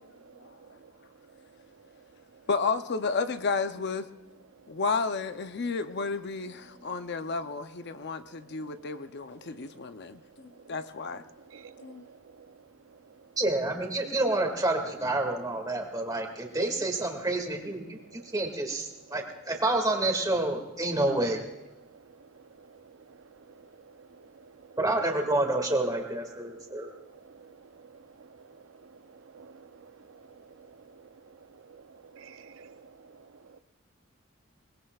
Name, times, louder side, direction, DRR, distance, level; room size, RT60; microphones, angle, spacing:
voice 1, 2.5-4.1 4.7-11.2 11.8-12.1, left 4 dB, 55° left, 0.6 m, -32 dB
voice 2, 11.5-11.9 24.0-24.1 27.3-27.5 29.3-29.7 30.6-30.7 31.7-31.8 32.1-32.9, right 6 dB, 75° right, 0.6 m, -50 dB
voice 3, 13.4-21.4 24.8-26.9, right 2 dB, 20° right, 2.1 m, -28 dB
22.5 x 21.0 x 2.4 m
head